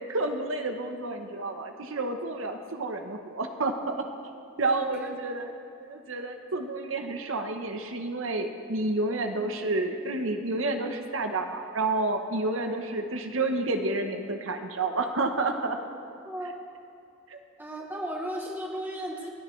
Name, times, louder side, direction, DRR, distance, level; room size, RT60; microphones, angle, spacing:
voice 1, 0.1-4.0 4.6-5.5 5.8-15.8 17.3-17.4, right 2 dB, 75° right, 5 dB, 1.0 m, -30 dB
voice 2, 16.2-16.6 17.6-19.3, right 1 dB, 10° right, 0 dB, 1.1 m, -35 dB
29.0 x 10.0 x 3.3 m, 2.5 s
head